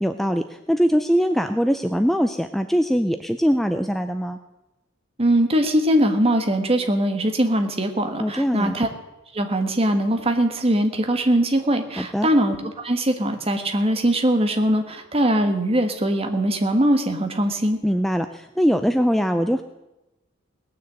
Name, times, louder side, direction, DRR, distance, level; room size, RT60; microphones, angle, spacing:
voice 1, 0.0-4.4 8.2-8.7 12.0-12.3 17.8-19.6, equal, ahead, 7 dB, 0.4 m, -22 dB
voice 2, 5.2-8.9 9.3-17.8, right 1 dB, 30° right, 5 dB, 1.4 m, -21 dB
18.5 x 6.8 x 7.8 m, 1.0 s
head